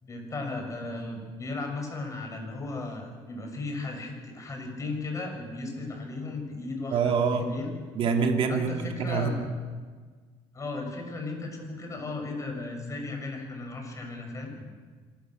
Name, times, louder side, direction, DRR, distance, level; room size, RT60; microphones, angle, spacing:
voice 1, 0.0-7.7 8.5-9.4 10.5-14.5, left 3 dB, 25° left, 3 dB, 6.4 m, -36 dB
voice 2, 6.9-7.4 7.9-9.3, right 5 dB, 50° right, 3 dB, 2.5 m, -25 dB
26.5 x 13.5 x 7.8 m, 1.5 s
cardioid pair, 110°, 12 cm